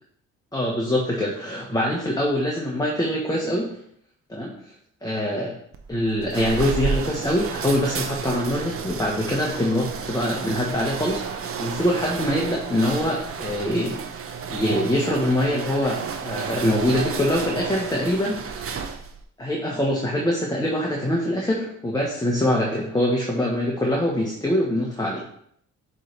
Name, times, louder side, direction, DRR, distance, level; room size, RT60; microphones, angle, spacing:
voice 1, 0.5-3.8 4.3-4.6 5.0-5.5 5.9-14.0 14.5-18.9 19.4-25.2, left 1 dB, 15° left, -2 dB, 1.2 m, -24 dB
sound 1, 5.7-19.2, right 6 dB, 50° right, 0.7 m, -32 dB
7.4 x 3.4 x 4.0 m, 0.67 s
cardioid pair, 90°, 30 cm